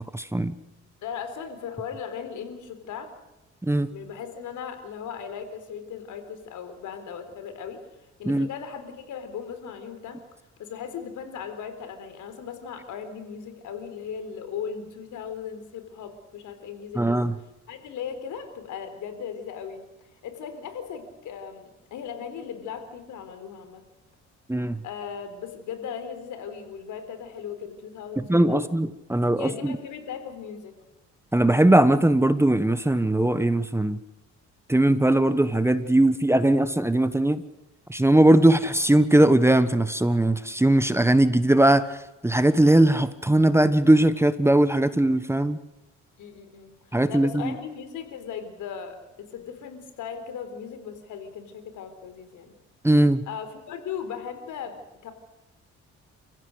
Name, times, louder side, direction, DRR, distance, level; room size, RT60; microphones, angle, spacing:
voice 1, 0.1-0.5 3.6-3.9 8.2-8.5 16.9-17.3 24.5-24.8 28.2-29.8 31.3-34.0 34.7-37.4 37.9-41.9 42.2-45.6 46.9-47.5 52.8-53.2, right 1 dB, 10° right, 13 dB, 1.1 m, -20 dB
voice 2, 1.0-3.1 3.9-7.8 8.2-10.2 10.6-17.2 17.7-19.8 20.2-23.8 24.8-28.6 29.4-30.7 46.2-52.5 53.3-54.8 55.0-55.1, left 7 dB, 80° left, 9 dB, 4.0 m, -37 dB
29.5 x 15.5 x 8.0 m, 1.0 s
cardioid pair, 90°, 30 cm